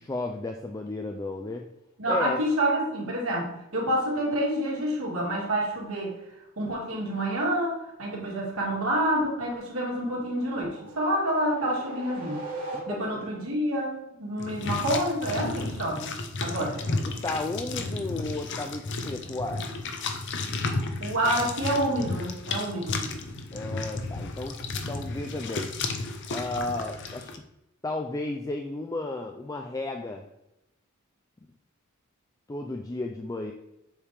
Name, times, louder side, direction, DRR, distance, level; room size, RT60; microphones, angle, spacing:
voice 1, 0.0-1.7 2.1-2.4 12.7-13.1 16.6-16.7 17.1-19.7 23.5-24.6 24.9-25.7 26.3-27.3 27.8-30.3 32.5-33.5, left 2 dB, 15° left, 3 dB, 0.4 m, -33 dB
voice 2, 2.0-6.2 6.6-12.4 12.9-16.1 16.4-16.8 21.0-23.0, right 1 dB, 80° right, -3 dB, 2.2 m, -28 dB
sound 1, 10.2-13.4, right 2 dB, 40° right, 2.3 m, -40 dB
sound 2, 14.4-27.4, left 3 dB, 55° left, 0.7 m, -33 dB
7.2 x 3.5 x 4.9 m, 0.86 s
head